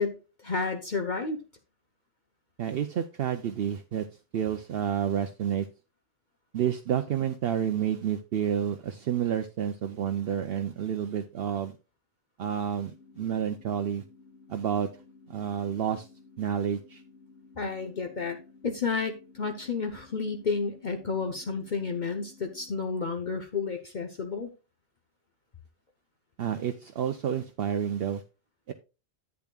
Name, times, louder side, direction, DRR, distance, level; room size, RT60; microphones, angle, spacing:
voice 1, 0.0-1.4 17.6-18.4 18.6-24.5, left 4 dB, 45° left, 5 dB, 1.0 m, -31 dB
voice 2, 2.6-4.1 4.3-5.7 6.5-11.8 12.4-14.0 14.5-14.9 15.3-16.1 16.4-17.0 26.4-28.2 28.7-28.8, right 9 dB, 65° right, 8 dB, 0.8 m, -29 dB
sound 1, 12.8-22.8, left 4 dB, 90° left, 6.3 m, -55 dB
10.5 x 8.5 x 2.3 m, 0.30 s
omnidirectional pair, 1.1 m